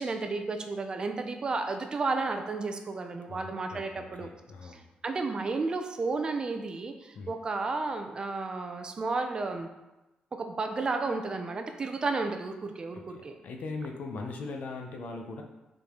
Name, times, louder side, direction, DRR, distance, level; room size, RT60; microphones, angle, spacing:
voice 1, 0.0-4.3 4.6-9.7 10.4-13.4, right 3 dB, 30° right, 5 dB, 0.5 m, -32 dB
voice 2, 3.3-4.9 7.1-7.3 12.9-15.4, left 3 dB, 60° left, 3 dB, 0.8 m, -40 dB
7.2 x 4.0 x 3.6 m, 1.0 s
wide cardioid pair, 165°, 3 cm